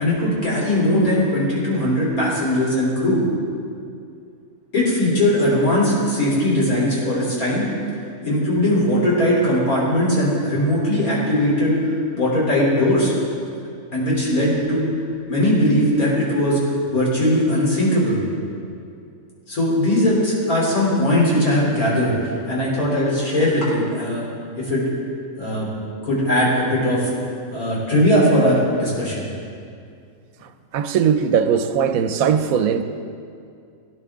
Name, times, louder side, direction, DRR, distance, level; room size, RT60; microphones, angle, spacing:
voice 1, 0.0-3.2 4.7-7.7 8.2-11.8 12.1-13.1 13.9-14.9 15.3-16.6 16.9-18.2 19.5-24.2 24.6-24.8 25.4-25.7 26.0-27.1 27.5-29.2, left 1 dB, 85° left, -6 dB, 3.9 m, -19 dB
voice 2, 30.7-32.8, right 7 dB, 80° right, 9 dB, 1.1 m, -19 dB
17.5 x 10.0 x 3.6 m, 2.4 s
omnidirectional pair, 1.5 m